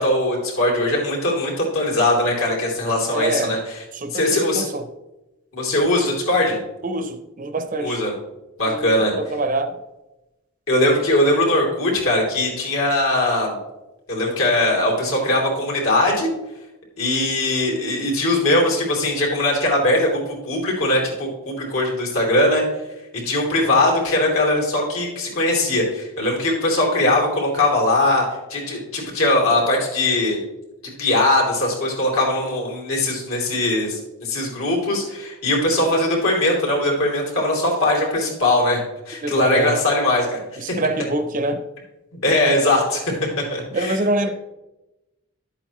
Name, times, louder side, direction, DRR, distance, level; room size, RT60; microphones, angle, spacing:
voice 1, 0.0-3.8 4.1-4.7 5.5-6.6 7.8-8.1 8.6-9.1 10.7-13.5 14.1-16.3 17.0-22.6 23.2-28.2 28.5-30.4 31.0-40.4 42.2-43.0 43.5-44.3, left 1 dB, 70° left, 3.1 m, -20 dB
voice 2, 3.1-3.6 3.9-4.3 4.5-4.8 6.8-8.0 8.7-8.9 9.2-9.7 39.2-39.8 40.6-41.6 43.7-44.3, right 2 dB, 35° right, 0.6 m, -24 dB
11.5 x 8.1 x 3.0 m
head